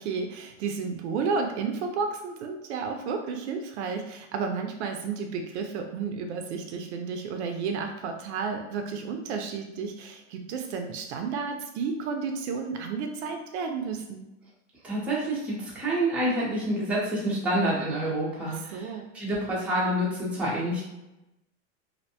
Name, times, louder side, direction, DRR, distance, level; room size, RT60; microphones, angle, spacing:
voice 1, 0.0-14.3 18.4-19.1, right 5 dB, 60° right, 4 dB, 0.5 m, -32 dB
voice 2, 14.8-20.8, right 1 dB, 5° right, -7 dB, 0.6 m, -28 dB
2.6 x 2.1 x 2.7 m, 0.93 s
supercardioid pair, 140°, 37 cm